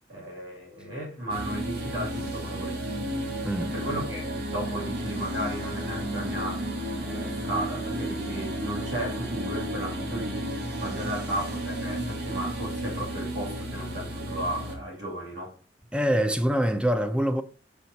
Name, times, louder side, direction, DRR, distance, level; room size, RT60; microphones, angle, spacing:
voice 1, 0.1-2.8 3.6-6.7 7.0-15.5, equal, 80° right, 2.8 m, -34 dB
sound 1, 1.3-14.8, right 1 dB, 60° right, 1.4 m, -33 dB
voice 2, 15.9-17.4, equal, 5° right, 0.5 m, -24 dB
6.0 x 4.4 x 4.1 m
head